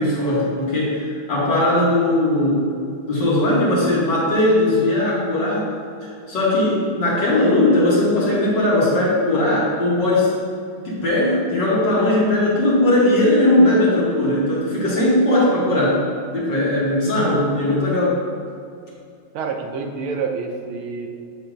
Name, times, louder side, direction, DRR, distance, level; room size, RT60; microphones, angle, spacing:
voice 1, 0.0-2.7 3.1-5.7 6.0-10.3 10.8-16.0 16.3-18.2, left 1 dB, 60° left, -7 dB, 2.6 m, -18 dB
voice 2, 19.3-21.1, right 5 dB, 90° right, 3 dB, 1.6 m, -27 dB
9.7 x 3.3 x 5.0 m, 2.4 s
omnidirectional pair, 2.2 m